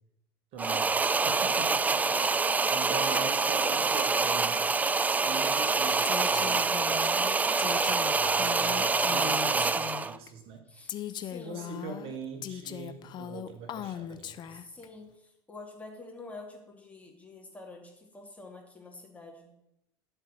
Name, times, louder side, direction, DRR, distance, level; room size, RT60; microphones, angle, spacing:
voice 1, 0.5-2.2 2.7-4.6 5.0-10.6 11.4-14.5, right 5 dB, 45° right, 5 dB, 1.5 m, -42 dB
sound 1, 0.6-10.2, right 4 dB, 10° right, 0.4 m, -26 dB
voice 2, 2.8-3.2 3.4-3.8 10.7-11.7 14.5-19.5, left 3 dB, 10° left, 0 dB, 2.8 m, -47 dB
Female speech woman speaking, 6.0-10.3 10.9-14.9, left 11 dB, 35° left, 0.6 m, -39 dB
12.0 x 4.5 x 8.0 m, 0.86 s
figure-of-eight pair, 75°, 13 cm